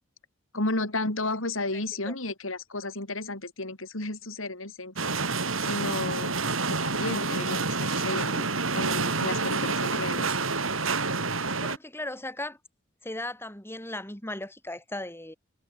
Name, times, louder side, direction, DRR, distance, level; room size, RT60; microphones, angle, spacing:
voice 1, 0.5-4.9 5.6-6.3 6.7-10.3, left 2 dB, 85° left, 6.0 m, -33 dB
voice 2, 1.7-2.1 11.6-12.6 13.0-15.3, left 1 dB, 10° left, 7.3 m, -37 dB
sound 1, 5.0-11.8, right 4 dB, 85° right, 6.0 m, -28 dB
head